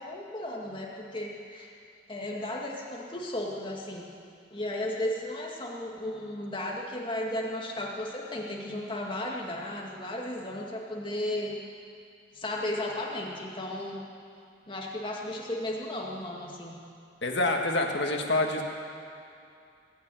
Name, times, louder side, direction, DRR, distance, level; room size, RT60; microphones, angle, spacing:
voice 1, 0.0-1.7 2.1-4.1 4.5-11.5 12.3-14.0 14.7-16.8 18.6-18.7, left 1 dB, 25° left, -2 dB, 2.0 m, -34 dB
voice 2, 17.2-18.6, left 2 dB, 65° left, 2 dB, 1.7 m, -26 dB
20.5 x 7.0 x 9.1 m, 2.5 s
head